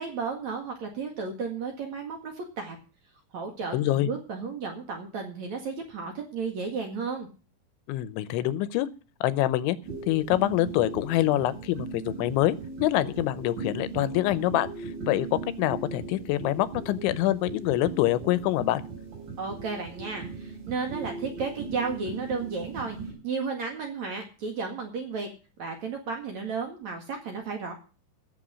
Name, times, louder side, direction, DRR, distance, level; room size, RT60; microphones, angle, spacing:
voice 1, 0.0-2.8 3.3-7.3 19.4-23.0 23.2-25.3 25.6-27.7, right 4 dB, 50° right, 3 dB, 2.5 m, -33 dB
voice 2, 3.7-4.1 7.9-8.9 9.2-9.8 10.1-14.7 15.1-18.8, left 14 dB, 85° left, 16 dB, 3.1 m, -25 dB
sound 1, 9.8-23.1, right 4 dB, 70° right, 8.1 m, -38 dB
16.0 x 7.6 x 6.2 m, 0.35 s
omnidirectional pair, 5.2 m